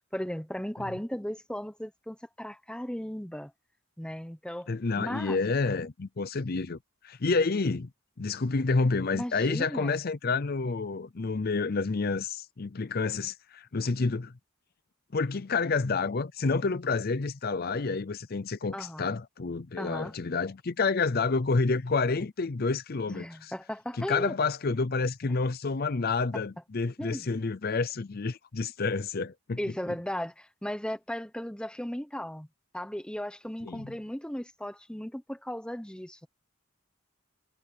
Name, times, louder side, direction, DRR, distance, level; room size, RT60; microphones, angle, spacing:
voice 1, 0.1-3.5 4.0-5.4 9.1-10.0 18.7-19.1 19.8-20.1 23.1-24.4 27.0-27.3 29.6-32.5 32.7-36.3, equal, 5° left, 1.1 m, -36 dB
voice 2, 4.7-6.8 7.0-7.9 8.2-14.3 15.1-23.5 24.0-29.6 33.7-33.9, left 4 dB, 50° left, 0.6 m, -29 dB
head